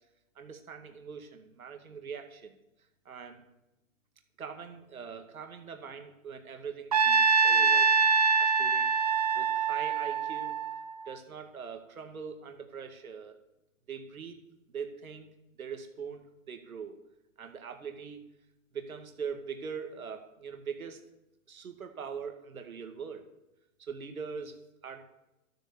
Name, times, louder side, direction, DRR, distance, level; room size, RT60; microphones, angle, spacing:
voice 1, 0.4-2.6 3.1-3.4 4.4-8.9 9.3-10.5 11.1-13.4 13.9-14.4 14.7-15.3 15.6-17.0 17.4-18.2 18.7-21.0 21.5-23.2 23.8-25.0, right 6 dB, 90° right, 5 dB, 2.1 m, -42 dB
Trumpet, 6.9-11.1, right 5 dB, 30° right, 0.5 m, -25 dB
13.0 x 9.0 x 7.2 m, 0.93 s
hypercardioid pair, 160°, 41 cm